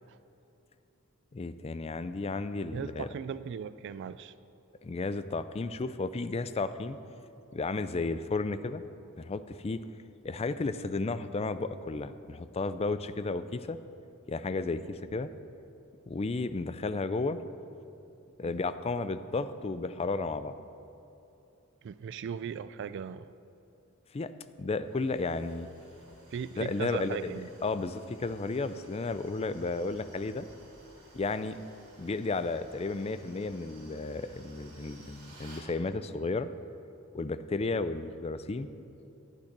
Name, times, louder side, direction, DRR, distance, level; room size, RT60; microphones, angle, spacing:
voice 1, 1.3-3.1 4.8-7.0 7.5-8.8 9.2-9.8 10.2-13.8 14.3-15.3 16.1-17.4 18.4-20.6 24.1-24.3 24.6-25.7 26.6-27.3 27.6-30.5 31.1-31.6 32.0-36.5 37.1-38.7, left 3 dB, 30° left, 13 dB, 0.4 m, -33 dB
voice 2, 2.7-4.3 18.4-18.6 21.8-23.3 26.3-27.5, right 7 dB, 55° right, 14 dB, 0.3 m, -38 dB
sound 1, 24.8-35.7, right 2 dB, 80° right, 3.1 m, -57 dB
sound 2, 26.1-26.2 26.9-27.0 27.7-27.9 28.3-28.4 29.1-29.2 29.9-30.0 30.4-30.6 31.3-31.4 32.1-32.2 32.6-32.8 33.4-33.6 34.3-34.4, left 1 dB, 80° left, 1.3 m, -59 dB
11.5 x 8.9 x 6.0 m, 2.9 s
head